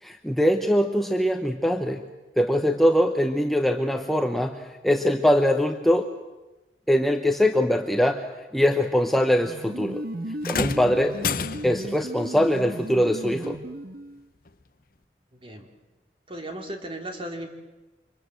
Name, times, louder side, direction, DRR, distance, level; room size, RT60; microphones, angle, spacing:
voice 1, 0.0-2.1 2.4-6.1 6.9-10.0 10.4-11.2 11.6-13.6, equal, ahead, 4 dB, 0.9 m, -22 dB
sound 1, 9.4-14.3, right 1 dB, 55° right, 1.6 m, -35 dB
sound 2, 10.4-12.0 13.4-13.6 14.5-14.6, left 5 dB, 55° left, 1.0 m, -30 dB
voice 2, 15.3-15.7 16.3-17.5, right 1 dB, 30° right, 4 dB, 3.2 m, -36 dB
29.0 x 25.5 x 7.8 m, 1.1 s
head